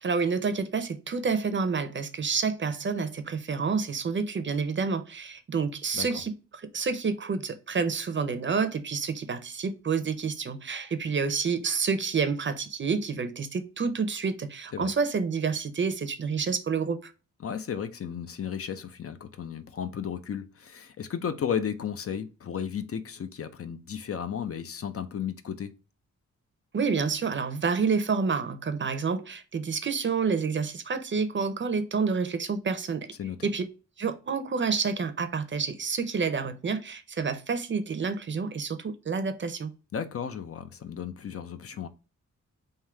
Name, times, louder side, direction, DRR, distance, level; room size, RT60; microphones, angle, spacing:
voice 1, 0.0-17.1 26.7-33.1 33.4-33.6 34.0-39.7, right 5 dB, 40° right, 0.6 m, -29 dB
voice 2, 17.4-25.7 33.2-33.5 39.9-41.9, left 8 dB, 50° left, 0.5 m, -34 dB
3.7 x 2.7 x 4.4 m
wide cardioid pair, 120°, 29 cm